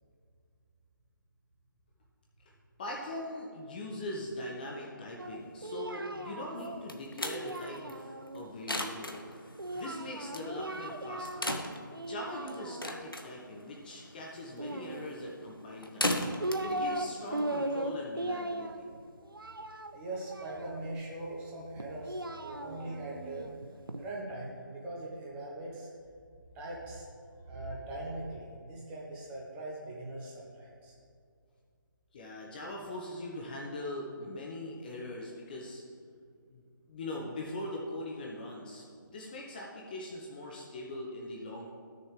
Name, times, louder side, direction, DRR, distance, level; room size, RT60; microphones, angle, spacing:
voice 1, 2.8-9.5 9.7-11.6 11.9-16.2 16.6-18.9 32.1-35.8 36.5-36.6 36.9-38.8 39.1-41.7, left 1 dB, 25° left, -2 dB, 0.7 m, -41 dB
Singing, 5.2-8.4 9.6-11.6 11.9-13.1 14.5-15.5 16.1-17.1 17.3-21.0 21.8-24.0, right 1 dB, 85° right, 0.7 m, -38 dB
sound 1, 6.6-18.0, left 1 dB, 85° left, 1.0 m, -39 dB
voice 2, 19.9-23.5 24.0-25.9 26.5-27.1 27.4-30.9, right 2 dB, 10° right, -4 dB, 1.1 m, -41 dB
13.0 x 6.6 x 3.3 m, 2.3 s
figure-of-eight pair, 150°, 11 cm